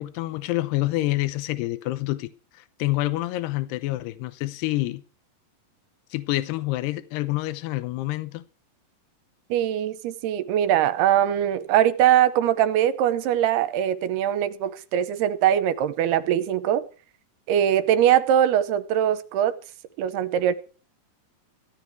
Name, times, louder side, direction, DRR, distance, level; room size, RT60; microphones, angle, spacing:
voice 1, 0.0-5.0 6.1-8.4, left 17 dB, 85° left, 2.9 m, -27 dB
voice 2, 9.5-16.8 17.5-19.5 20.0-20.5, right 10 dB, 80° right, 2.9 m, -22 dB
16.5 x 11.5 x 4.7 m
omnidirectional pair, 4.7 m